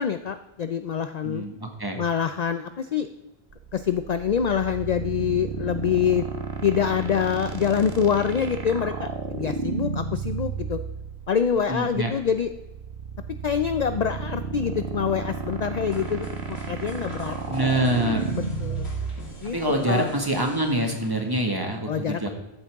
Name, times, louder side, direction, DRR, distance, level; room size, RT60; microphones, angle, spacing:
voice 1, 0.0-1.4 2.0-3.1 3.7-6.2 6.6-10.8 11.3-12.5 13.4-17.4 18.3-18.9 19.4-19.6 19.9-20.1 21.9-22.3, left 7 dB, 50° left, 10 dB, 0.5 m, -25 dB
voice 2, 1.2-2.0 11.7-12.1 17.5-18.3 19.4-22.3, right 1 dB, 20° right, 2 dB, 1.7 m, -25 dB
sound 1, 3.5-20.7, right 5 dB, 85° right, 1.5 m, -33 dB
sound 2, 15.9-21.6, left 1 dB, 90° left, 2.5 m, -45 dB
14.5 x 8.4 x 3.6 m, 1.0 s
omnidirectional pair, 1.0 m